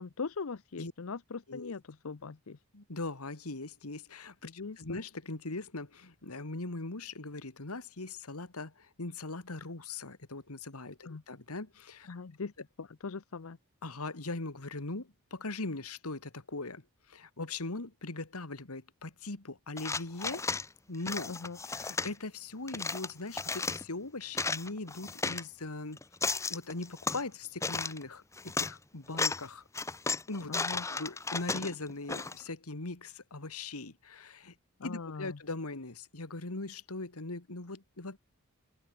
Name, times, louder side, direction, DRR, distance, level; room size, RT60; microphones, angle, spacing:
voice 1, 0.0-2.6 4.6-5.0 11.0-11.2 12.1-12.5 12.8-13.6 21.3-21.6 30.5-30.8 34.8-35.4, left 4 dB, 75° left, 0.7 m, -40 dB
voice 2, 2.7-12.2 13.8-20.5 20.9-21.3 21.7-26.0 26.5-29.6 30.3-30.5 30.8-34.5 34.8-38.2, left 2 dB, 90° left, 2.1 m, -40 dB
sound 1, 19.8-20.7 21.1-22.1 22.7-23.8 24.2-25.4 26.0-27.2 27.6-28.0 28.4-28.7 29.1-29.5 29.7-32.4, left 4 dB, 15° left, 0.8 m, -34 dB
open air
head